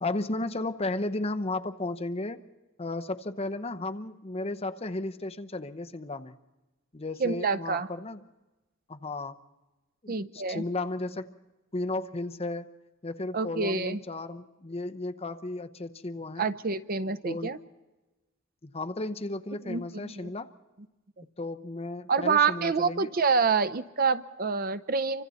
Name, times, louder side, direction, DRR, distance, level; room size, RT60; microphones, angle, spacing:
voice 1, 0.0-2.4 2.8-6.4 6.9-8.2 8.9-9.4 10.0-11.4 11.7-12.7 13.0-16.5 17.2-17.6 18.6-20.5 21.4-23.1, left 2 dB, 30° left, 8 dB, 0.9 m, -34 dB
voice 2, 7.2-7.9 10.1-10.6 13.3-14.0 16.4-17.6 19.6-20.3 21.2-21.3 22.1-25.2, right 5 dB, 45° right, 14 dB, 0.7 m, -27 dB
28.5 x 25.0 x 4.2 m, 1.1 s
head